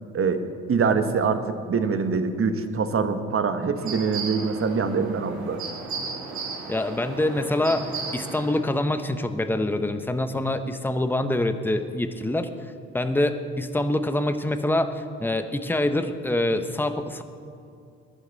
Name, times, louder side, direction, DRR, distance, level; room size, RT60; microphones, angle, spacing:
voice 1, 0.7-5.6, right 5 dB, 40° right, 8 dB, 1.5 m, -24 dB
sound 1, 3.8-8.8, right 4 dB, 55° right, 2.7 m, -35 dB
voice 2, 6.7-12.5 12.9-17.2, left 1 dB, 5° left, 8 dB, 1.1 m, -25 dB
21.5 x 11.0 x 4.1 m, 2.6 s
hypercardioid pair, 55°, 34 cm